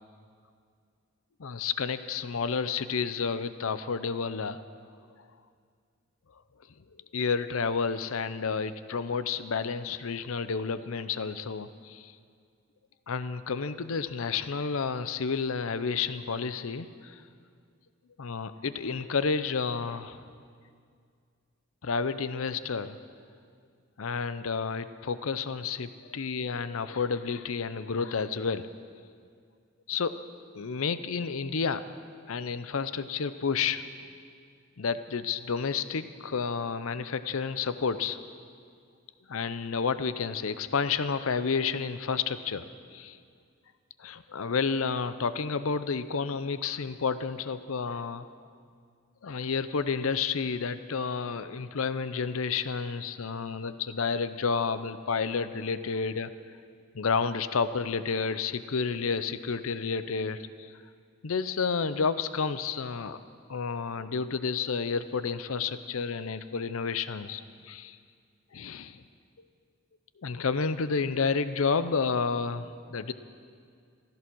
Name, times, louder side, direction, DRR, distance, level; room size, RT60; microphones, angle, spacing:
voice 1, 1.4-4.6 7.1-12.1 13.1-17.2 18.2-20.2 21.8-23.0 24.0-28.7 29.9-30.2 30.6-31.8 32.3-33.9 34.8-38.2 39.3-42.7 42.9-43.2 44.0-48.3 49.2-56.3 56.9-60.4 61.2-63.2 63.5-68.0 68.5-69.0 70.2-73.1, left 5 dB, 75° left, 13 dB, 0.6 m, -30 dB
15.0 x 14.0 x 6.2 m, 2.2 s
head